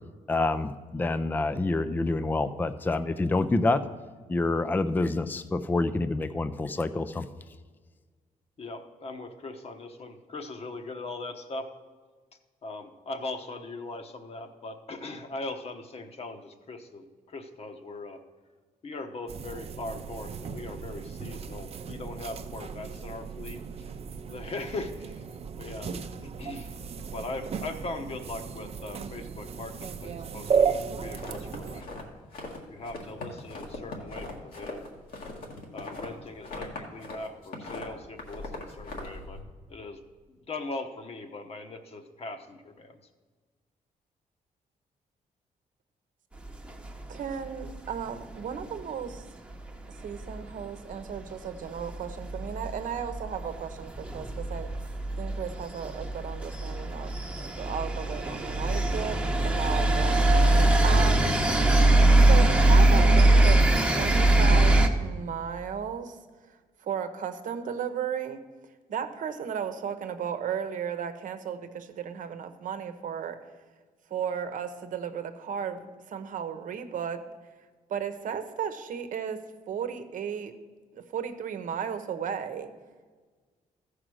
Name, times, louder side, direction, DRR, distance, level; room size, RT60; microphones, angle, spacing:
voice 1, 0.3-3.8 4.3-7.3, left 2 dB, 15° left, 11 dB, 0.4 m, -27 dB
voice 2, 8.6-11.7 12.6-18.2 18.8-23.9 24.3-25.2 25.6-26.0 26.4-26.7 27.1-29.7 30.0-31.9 32.7-34.8 35.7-39.4 39.7-40.0 40.3-43.0, left 2 dB, 45° left, 6 dB, 1.0 m, -40 dB
sound 1, 19.3-31.8, right 6 dB, 45° right, 0.6 m, -34 dB
sound 2, 31.1-32.6 32.8-37.2 37.4-39.4, left 2 dB, 85° left, 1.8 m, -40 dB
sound 3, 46.4-47.3 47.6-47.7 48.0-48.1 48.3-48.6 49.5-49.7 50.1-50.6 51.1-51.2 51.5-64.9, right 2 dB, 10° right, 0.9 m, -22 dB
voice 3, 47.1-49.3 50.0-54.7 55.2-61.5 62.2-68.4 68.9-73.4 74.1-77.2 77.9-80.6 80.9-82.7, right 7 dB, 70° right, 9 dB, 0.9 m, -35 dB
14.5 x 5.0 x 6.2 m, 1.5 s
cardioid pair, 115°, 14 cm